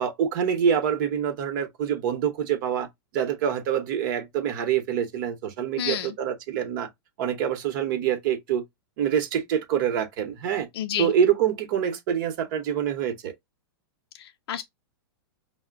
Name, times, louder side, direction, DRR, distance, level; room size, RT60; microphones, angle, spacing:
voice 1, 0.0-2.9 3.1-6.9 7.2-8.6 9.0-10.7 11.0-13.3, right 8 dB, 50° right, 1.0 m, -26 dB
voice 2, 5.8-6.1 10.7-11.1 14.2-14.6, left 11 dB, 70° left, 0.4 m, -30 dB
5.4 x 2.2 x 2.4 m
supercardioid pair, 155°, 13 cm